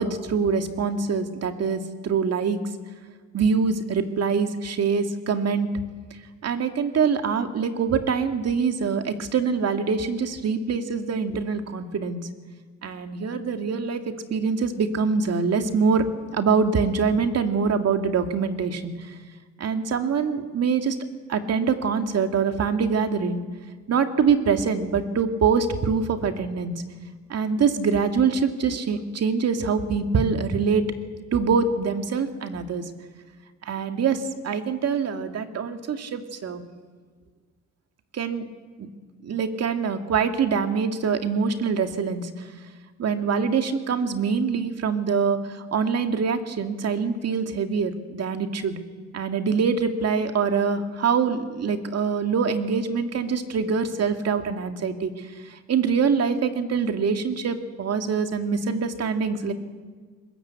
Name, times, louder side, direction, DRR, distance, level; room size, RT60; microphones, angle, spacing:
voice 1, 0.0-2.6 3.3-5.7 6.4-12.2 12.8-16.0 16.3-19.1 19.6-21.0 21.3-23.4 23.9-26.7 27.3-30.8 31.3-32.8 33.6-36.6 38.1-38.4 38.8-38.9 39.2-42.3 43.0-48.8 49.1-59.5, right 5 dB, 55° right, 6 dB, 2.2 m, -24 dB
21.5 x 21.0 x 8.2 m, 1.5 s
cardioid pair, 90°, 30 cm